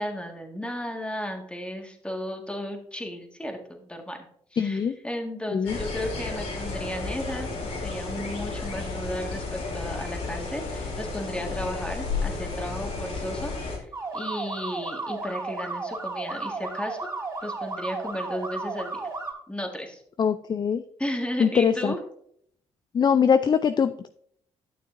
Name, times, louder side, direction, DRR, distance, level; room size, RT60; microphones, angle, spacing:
voice 1, 0.0-17.0 17.4-19.0 19.5-20.0 21.0-22.0, equal, 10° left, 2 dB, 1.7 m, -34 dB
voice 2, 4.6-5.0 5.5-5.8 20.2-20.8 21.4-21.9 22.9-24.1, left 7 dB, 35° left, 11 dB, 0.4 m, -22 dB
sound 1, 5.7-13.8, left 3 dB, 75° left, 3.0 m, -32 dB
sound 2, 13.9-19.3, right 3 dB, 25° right, 3.0 m, -33 dB
12.0 x 6.5 x 2.6 m, 0.66 s
cardioid pair, 75°, 12 cm